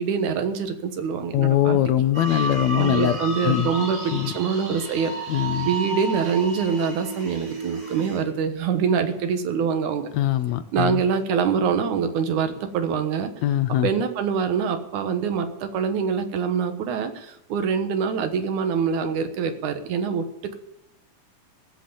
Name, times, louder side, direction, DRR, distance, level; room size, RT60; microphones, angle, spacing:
voice 1, 0.0-1.8 2.3-5.1 5.6-10.1 10.7-13.3 13.8-20.5, right 6 dB, 85° right, 8 dB, 2.7 m, -25 dB
voice 2, 1.3-3.2 3.5-3.7 4.1-4.3 5.3-5.7 10.1-11.0 13.4-13.9, left 12 dB, 75° left, 12 dB, 2.0 m, -22 dB
sound 1, 2.1-8.2, right 2 dB, 60° right, 5.5 m, -32 dB
16.0 x 7.9 x 7.0 m, 0.78 s
omnidirectional pair, 3.4 m